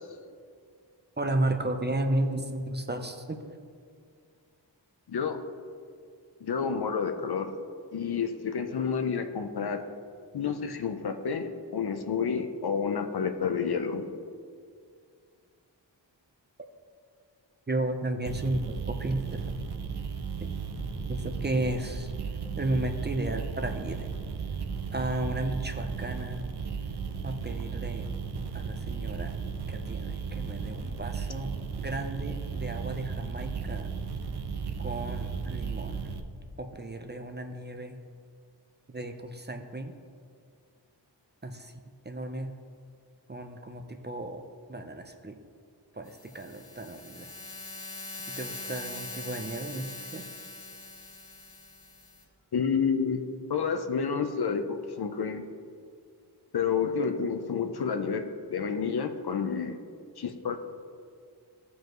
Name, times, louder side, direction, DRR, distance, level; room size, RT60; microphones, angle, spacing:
voice 1, 1.2-3.4 17.7-19.4 20.4-20.5 21.1-22.1 22.6-24.1 24.9-26.4 27.2-28.1 28.5-29.4 29.7-33.9 34.8-36.1 36.6-38.0 38.9-39.9 41.4-41.8 42.0-42.5 43.3-44.4 44.7-45.4 45.9-47.3 48.2-50.3, right 1 dB, 25° right, 6 dB, 0.7 m, -33 dB
voice 2, 5.1-5.4 6.4-7.5 7.9-9.8 10.3-14.1 52.5-53.2 53.5-55.5 56.5-59.8 60.2-60.6, left 6 dB, 60° left, 7 dB, 0.7 m, -29 dB
sound 1, 18.3-36.2, right 5 dB, 60° right, 0.7 m, -35 dB
sound 2, 46.1-52.2, left 2 dB, 75° left, 1.4 m, -42 dB
14.0 x 5.2 x 3.0 m, 2.2 s
cardioid pair, 50°, 43 cm